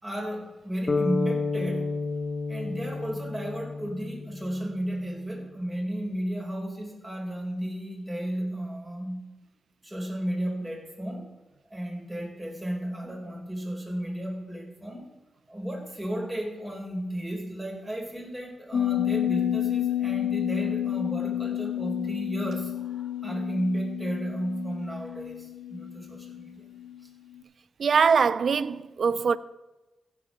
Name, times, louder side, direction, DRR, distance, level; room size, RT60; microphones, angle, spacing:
voice 1, 0.0-1.9 2.5-9.2 9.8-11.3 11.7-15.1 15.5-26.7, right 1 dB, 20° right, 4.8 m, -33 dB
sound 1, 0.9-5.1, left 3 dB, 45° left, 1.2 m, -31 dB
sound 2, 18.7-27.0 27.4-27.5, left 12 dB, 75° left, 2.1 m, -30 dB
voice 2, 27.8-29.4, right 6 dB, 65° right, 0.4 m, -22 dB
15.5 x 5.4 x 6.4 m
supercardioid pair, 45°, 0 cm